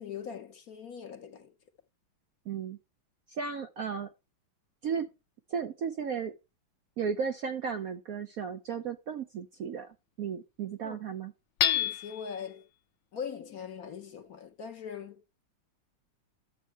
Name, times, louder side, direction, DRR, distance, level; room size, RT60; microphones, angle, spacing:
voice 1, 0.0-1.5 10.8-11.0 11.6-12.6 13.1-15.2, left 7 dB, 55° left, 1.2 m, -41 dB
voice 2, 2.5-2.8 3.4-4.1 4.8-5.1 5.5-6.3 7.0-9.9 10.2-11.3, right 6 dB, 65° right, 0.9 m, -34 dB
Hammer / Chink clink, 11.6-12.4, left 10 dB, 80° left, 1.4 m, -28 dB
11.0 x 7.4 x 3.3 m
omnidirectional pair, 2.1 m